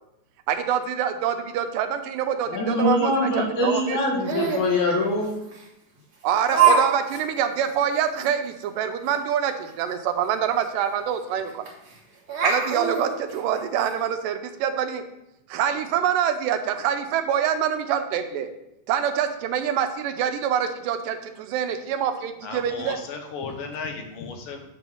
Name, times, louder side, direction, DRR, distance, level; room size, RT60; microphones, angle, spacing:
voice 1, 0.5-4.0 6.2-11.7 12.4-15.0 15.5-18.5 18.9-23.0, right 9 dB, 85° right, 7 dB, 2.3 m, -25 dB
voice 2, 2.5-5.4, left 1 dB, 65° left, -1 dB, 2.7 m, -23 dB
Laughter, 4.2-4.7 5.5-5.6 6.5-6.8 7.1-7.2 7.7-7.8 8.2-8.3 10.2-10.3 10.6-10.7 11.7-11.9 12.3-13.9, right 6 dB, 50° right, 2.0 m, -22 dB
voice 3, 22.4-24.7, left 4 dB, 85° left, 4 dB, 2.6 m, -35 dB
8.0 x 3.4 x 6.0 m, 0.86 s
omnidirectional pair, 3.8 m